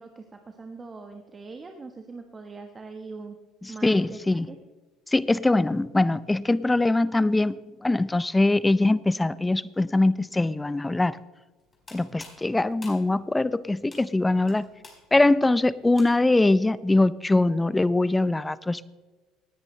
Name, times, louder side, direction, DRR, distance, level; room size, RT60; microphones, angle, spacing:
voice 1, 0.0-3.4 3.7-4.2 4.5-4.6, right 4 dB, 30° right, 5 dB, 1.3 m, -41 dB
voice 2, 3.6-4.5 5.1-11.2 11.9-14.7 15.1-18.9, left 2 dB, 15° left, 18 dB, 0.5 m, -22 dB
sound 1, 11.6-16.5, left 3 dB, 30° left, 4.4 m, -50 dB
18.0 x 10.5 x 3.3 m, 1.3 s
supercardioid pair, 80°, 0 cm